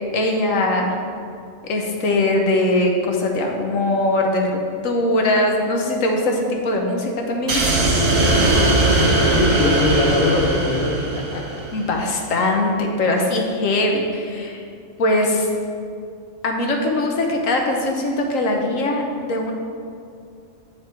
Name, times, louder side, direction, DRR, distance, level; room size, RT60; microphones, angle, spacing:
voice 1, 0.1-1.0 1.6-7.6 11.7-14.6 15.0-15.5 16.4-19.5, left 1 dB, 70° left, 1 dB, 1.3 m, -21 dB
sound 1, 7.5-11.8, right 2 dB, 70° right, 1.5 m, -19 dB
voice 2, 8.3-11.4, left 3 dB, 85° left, 0 dB, 1.5 m, -22 dB
8.7 x 4.8 x 4.4 m, 2.4 s
omnidirectional pair, 1.4 m